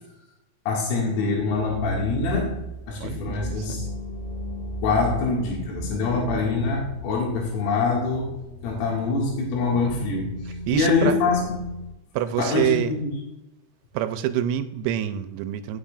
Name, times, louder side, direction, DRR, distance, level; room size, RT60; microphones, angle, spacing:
voice 1, 0.7-2.6 2.9-3.9 4.8-8.3 8.6-11.5 12.4-13.1, left 4 dB, 85° left, -3 dB, 4.8 m, -24 dB
sound 1, 1.4-11.9, equal, 5° left, 2.3 m, -36 dB
voice 2, 3.0-3.8 10.7-11.2 12.1-12.9 13.9-15.8, right 11 dB, 90° right, 10 dB, 3.3 m, -26 dB
17.0 x 8.7 x 2.5 m, 0.91 s
omnidirectional pair, 6.0 m